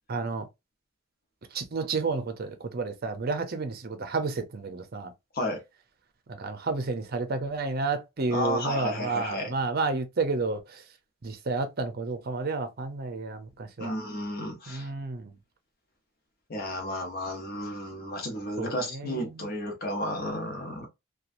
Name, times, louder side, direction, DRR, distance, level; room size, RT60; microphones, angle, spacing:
voice 1, 0.1-0.5 1.5-5.1 6.3-10.8 11.2-14.0 14.7-15.3 18.6-19.5, right 3 dB, 45° right, 0.6 m, -31 dB
voice 2, 8.3-9.5 13.8-14.9 16.5-20.9, left 1 dB, 45° left, 0.9 m, -32 dB
3.0 x 2.3 x 2.5 m
head